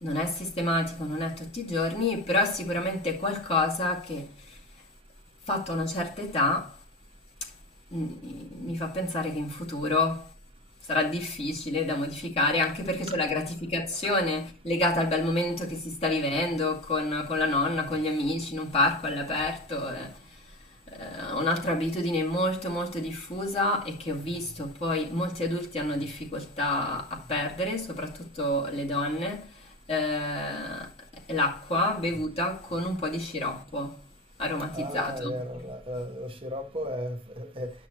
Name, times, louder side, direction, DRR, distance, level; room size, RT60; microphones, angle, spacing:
voice 1, 0.0-4.6 5.5-6.8 7.4-7.5 7.9-10.3 10.8-20.6 20.9-34.0 34.4-35.6, left 2 dB, 35° left, 2.2 m, -29 dB
voice 2, 34.7-37.7, equal, 30° right, 1.0 m, -35 dB
11.5 x 6.1 x 2.9 m
head